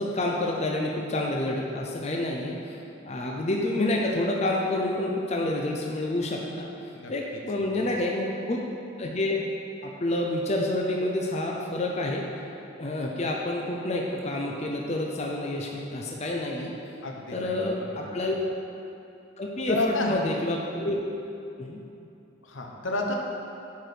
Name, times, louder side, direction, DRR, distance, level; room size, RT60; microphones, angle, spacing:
voice 1, 0.0-2.8 3.0-6.7 7.1-8.6 9.0-9.4 9.8-12.5 12.8-16.7 17.3-18.3 19.4-21.0 21.6-21.8, left 1 dB, 35° left, -1 dB, 0.6 m, -28 dB
voice 2, 17.0-18.3 19.7-20.3 22.4-23.1, left 2 dB, 75° left, 1 dB, 1.0 m, -31 dB
10.5 x 4.6 x 5.0 m, 2.8 s
head